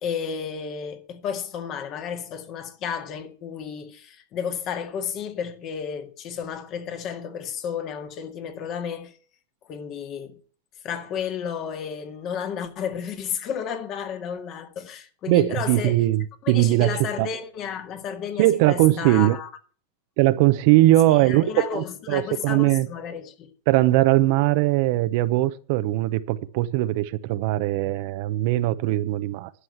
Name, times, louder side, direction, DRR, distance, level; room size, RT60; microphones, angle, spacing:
voice 1, 0.0-9.2 9.6-10.4 10.8-16.1 16.4-19.5 21.2-23.5, left 7 dB, 40° left, 1.9 m, -32 dB
voice 2, 15.3-17.3 18.4-19.4 20.2-22.9 23.7-29.5, right 16 dB, 60° right, 0.8 m, -20 dB
11.5 x 6.2 x 7.1 m
hypercardioid pair, 120°, 0 cm